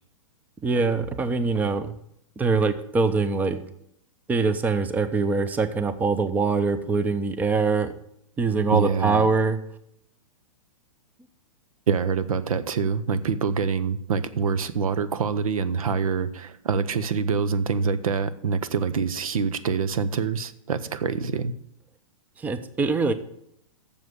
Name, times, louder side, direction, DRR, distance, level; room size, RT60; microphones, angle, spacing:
voice 1, 0.6-1.9 2.4-3.6 4.3-7.9 8.4-9.6 22.4-23.1, right 4 dB, 10° right, 12 dB, 0.5 m, -23 dB
voice 2, 8.7-9.3 11.9-21.5, right 6 dB, 80° right, 14 dB, 0.8 m, -25 dB
7.3 x 6.9 x 8.0 m, 0.72 s
hypercardioid pair, 130°, 18 cm